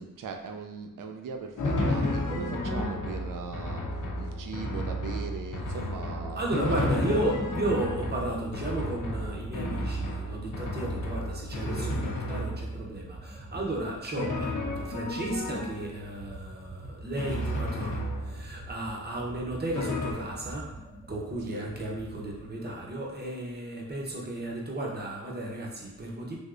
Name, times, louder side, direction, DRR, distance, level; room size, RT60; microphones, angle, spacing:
voice 1, 0.0-3.8 4.2-7.0 21.5-21.7, right 5 dB, 70° right, 4 dB, 0.5 m, -39 dB
Drum, 1.6-12.9 14.2-16.1 17.2-18.7 19.7-20.1, left 1 dB, 60° left, 0.6 m, -32 dB
voice 2, 6.4-20.7 21.1-26.4, right 1 dB, 30° right, -2 dB, 0.7 m, -34 dB
sound 1, 7.1-22.8, right 1 dB, 10° right, 0.4 m, -46 dB
3.4 x 2.6 x 2.4 m, 1.0 s
cardioid pair, 65°, 33 cm